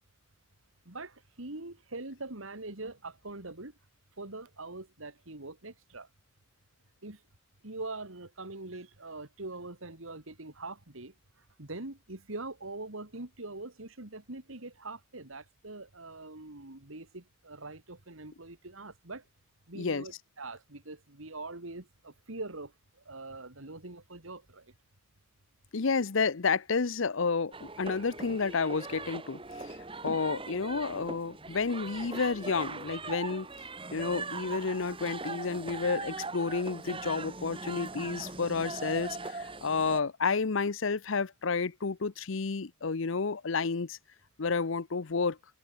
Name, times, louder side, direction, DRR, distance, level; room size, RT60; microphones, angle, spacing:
voice 1, 0.8-3.7 4.2-6.1 7.0-7.2 7.6-11.1 11.6-19.2 19.7-22.7 23.1-24.7, right 2 dB, 75° right, 2.6 m, -43 dB
voice 2, 19.7-20.1 25.7-29.7 30.0-33.5 33.9-44.0 44.4-45.4, left 4 dB, 70° left, 0.7 m, -30 dB
sound 1, 27.5-40.0, right 3 dB, 25° right, 2.8 m, -40 dB
head